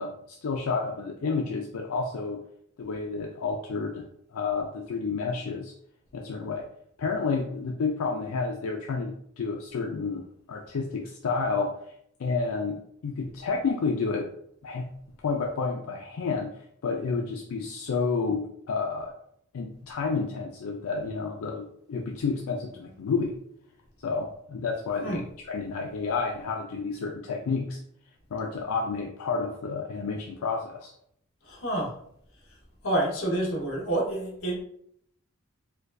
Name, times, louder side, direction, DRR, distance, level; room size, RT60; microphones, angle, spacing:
voice 1, 0.0-2.4 2.8-4.0 4.3-5.7 6.1-6.7 7.0-10.2 10.5-11.8 12.2-12.8 13.0-14.3 14.6-14.9 15.2-16.5 16.8-19.1 19.5-23.3 24.0-25.2 25.5-27.8 28.3-30.9, left 4 dB, 85° left, 1 dB, 0.4 m, -30 dB
voice 2, 31.5-31.9 32.8-34.6, right 1 dB, 65° left, -1 dB, 1.0 m, -28 dB
4.3 x 2.3 x 2.5 m, 0.68 s
head